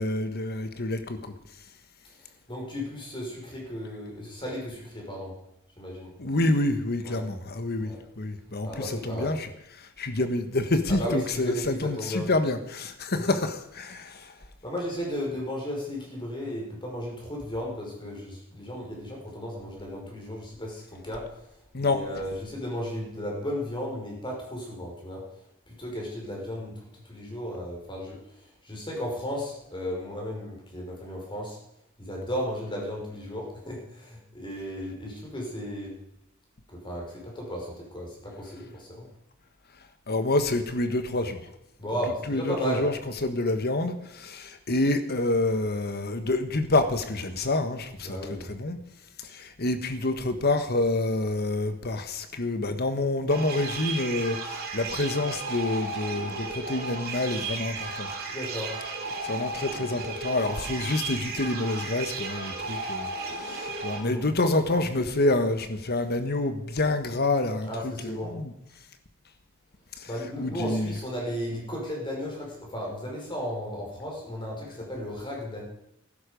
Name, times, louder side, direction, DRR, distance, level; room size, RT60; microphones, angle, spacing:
voice 1, 0.0-1.3 6.2-9.5 10.0-14.3 21.7-22.0 40.1-41.4 42.3-42.9 43.2-48.2 48.5-48.8 49.3-58.1 59.2-68.5 70.4-70.9, left 2 dB, 50° left, 9 dB, 1.4 m, -27 dB
voice 2, 2.5-5.4 5.8-6.1 7.0-7.3 7.8-8.0 8.6-9.4 10.2-10.3 10.9-12.3 14.6-21.3 21.8-25.2 25.7-28.2 28.6-31.6 32.0-35.9 36.7-39.1 41.8-42.9 48.0-48.6 58.3-58.7 64.0-64.3 67.7-68.4 70.1-75.6, equal, 25° left, -2 dB, 5.5 m, -34 dB
sound 1, 53.3-64.0, right 3 dB, 45° right, 2.7 m, -34 dB
15.5 x 12.0 x 5.3 m, 0.81 s
head